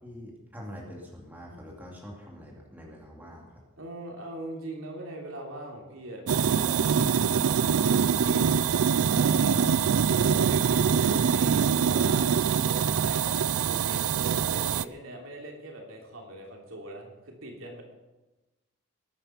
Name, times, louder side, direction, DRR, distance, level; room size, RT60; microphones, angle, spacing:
voice 1, 0.0-3.6 9.5-10.5, equal, 10° right, -2 dB, 2.6 m, -43 dB
voice 2, 3.8-6.9 7.6-12.3 12.6-17.8, right 1 dB, 75° right, 0 dB, 3.1 m, -41 dB
sound 1, 6.3-14.8, right 7 dB, 90° right, 0.4 m, -24 dB
20.5 x 9.2 x 5.8 m, 1.1 s
head